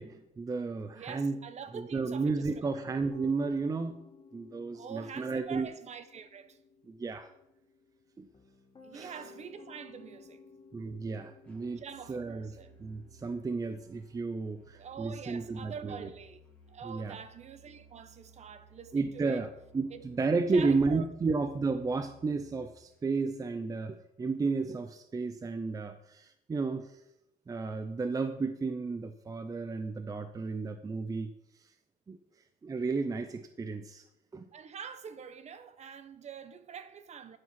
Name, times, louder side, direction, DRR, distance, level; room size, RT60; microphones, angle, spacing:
voice 1, 0.0-1.4 1.7-5.7 6.9-7.3 8.2-8.3 8.9-9.2 10.7-11.8 12.1-12.5 12.8-16.1 16.8-17.2 18.9-19.5 19.7-27.0 27.5-31.3 32.1-32.2 32.6-34.0 34.3-34.5, right 4 dB, 20° right, 0.5 m, -33 dB
voice 2, 0.9-2.9 4.7-6.6 8.8-10.4 11.8-12.8 14.7-16.4 16.7-19.5 19.9-20.0 20.5-21.1 34.5-37.4, right 7 dB, 40° right, 1.0 m, -45 dB
Piano, 2.5-19.6, left 4 dB, 25° left, 1.5 m, -58 dB
Musical instrument, 11.4-23.2, right 3 dB, 5° left, 2.5 m, -59 dB
14.0 x 4.8 x 5.8 m
cardioid pair, 110°, 17 cm